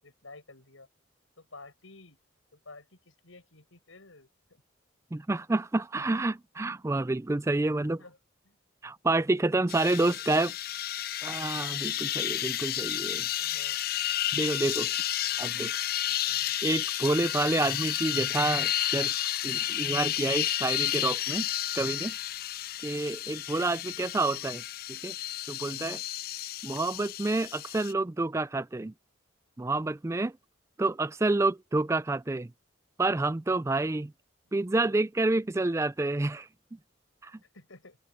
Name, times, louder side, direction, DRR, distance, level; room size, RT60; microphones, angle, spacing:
voice 1, 0.0-0.9 1.4-2.2 2.5-4.6 7.8-8.2 8.4-8.6 10.1-10.3 13.2-13.8 15.2-15.5 16.1-16.6 24.0-24.3 34.4-34.5 37.5-38.0, left 3 dB, 90° left, 6.6 m, -53 dB
voice 2, 5.1-8.0 8.8-10.5 11.2-13.3 14.3-14.9 15.4-15.7 16.6-19.1 19.4-21.5 21.7-22.1 22.8-24.6 24.9-25.1 25.5-26.0 26.6-28.9 29.6-30.3 30.8-32.5 33.0-34.1 34.5-36.8 37.2-37.4, right 2 dB, 15° right, 0.3 m, -28 dB
sound 1, 9.7-27.9, left 12 dB, 50° left, 0.5 m, -32 dB
open air
head